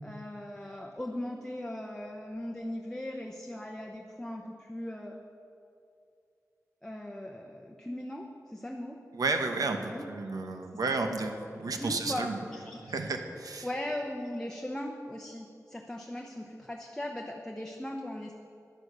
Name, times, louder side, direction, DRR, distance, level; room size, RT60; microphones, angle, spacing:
voice 1, 0.0-5.2 6.8-9.0 9.8-10.0 10.7-10.8 11.6-13.0 13.6-18.3, left 1 dB, 10° left, 1 dB, 0.8 m, -39 dB
voice 2, 9.1-12.4 12.8-13.7, right 3 dB, 80° right, 5 dB, 1.1 m, -32 dB
10.5 x 9.9 x 6.6 m, 2.6 s
wide cardioid pair, 100°, 6 cm